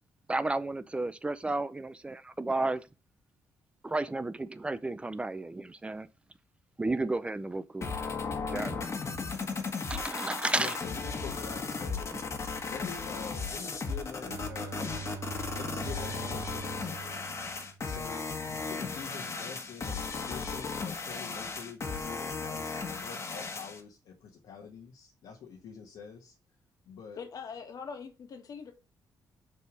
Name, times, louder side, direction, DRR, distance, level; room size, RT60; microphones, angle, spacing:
voice 1, 0.3-2.8 3.8-6.1 6.8-7.9 8.5-8.9 9.4-9.6 9.9-10.8, right 2 dB, 15° right, 0.5 m, -32 dB
sound 1, 7.8-23.8, left 4 dB, 40° left, 1.5 m, -36 dB
voice 2, 10.5-12.1 12.6-15.1 15.5-17.2 17.8-26.3 26.8-27.2, left 6 dB, 80° left, 1.6 m, -46 dB
Bowed string instrument, 14.2-18.2, right 5 dB, 85° right, 1.4 m, -43 dB
voice 3, 27.2-28.7, left 6 dB, 55° left, 1.7 m, -42 dB
6.7 x 3.6 x 6.1 m
cardioid pair, 105°, 7 cm